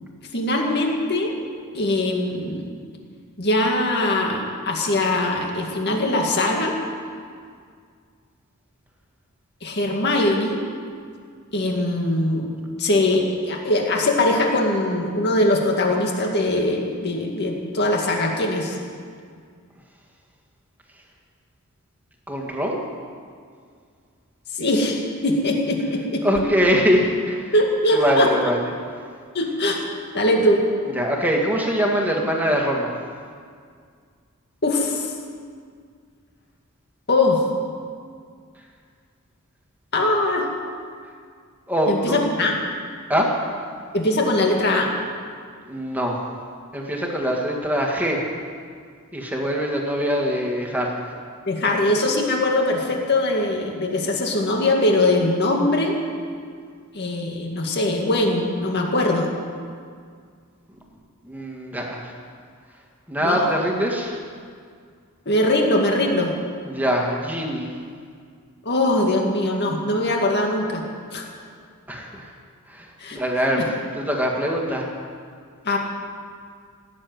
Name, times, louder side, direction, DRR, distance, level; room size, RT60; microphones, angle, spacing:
voice 1, 0.3-1.3 1.7-2.7 3.4-6.7 9.6-10.6 11.5-12.5 12.8-18.8 24.5-26.2 27.5-28.3 29.3-29.9 30.1-30.6 34.6-35.1 37.1-37.5 39.9-40.5 41.9-42.6 43.9-44.9 51.5-56.0 56.9-59.3 63.2-63.5 65.3-66.3 68.7-70.8 71.1-71.3 73.0-73.2 73.5-73.7 75.7-75.8, left 1 dB, 50° left, 1 dB, 2.2 m, -21 dB
voice 2, 22.3-22.8 26.2-27.5 27.9-28.7 30.9-32.9 41.7-42.2 43.1-43.3 45.7-46.2 46.7-48.2 49.1-51.0 61.2-62.1 63.1-64.2 66.6-67.7 71.9-72.3 72.7-72.9 73.1-73.6 73.9-74.9, equal, 10° right, -1 dB, 2.0 m, -23 dB
17.5 x 7.8 x 9.3 m, 2.1 s
head